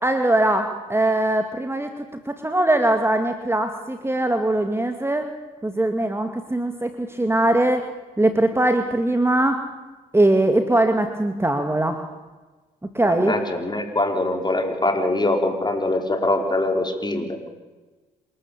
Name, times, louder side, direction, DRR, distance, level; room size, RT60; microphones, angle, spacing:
voice 1, 0.0-5.3 5.6-7.9 8.2-9.6 10.1-12.0 12.8-13.4, right 1 dB, 10° right, 6 dB, 2.2 m, -21 dB
voice 2, 13.0-17.5, left 2 dB, 20° left, 4 dB, 5.0 m, -23 dB
27.0 x 13.5 x 8.6 m, 1.2 s
hypercardioid pair, 50°, 20 cm